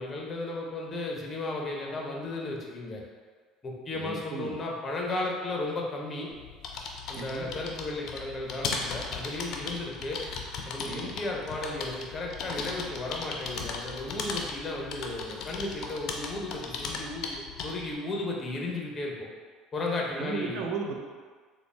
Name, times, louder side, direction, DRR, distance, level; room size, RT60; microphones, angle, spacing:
voice 1, 0.0-3.0 3.6-6.3 7.1-10.2 10.7-19.3 19.7-20.6, left 2 dB, 30° left, -1 dB, 0.7 m, -34 dB
voice 2, 3.9-4.5 7.1-7.5 10.9-11.2 20.2-21.0, right 5 dB, 65° right, 1 dB, 0.5 m, -35 dB
sound 1, 6.3-17.9, left 4 dB, 60° left, 0.4 m, -37 dB
3.8 x 2.2 x 3.3 m, 1.5 s
supercardioid pair, 80°, 0 cm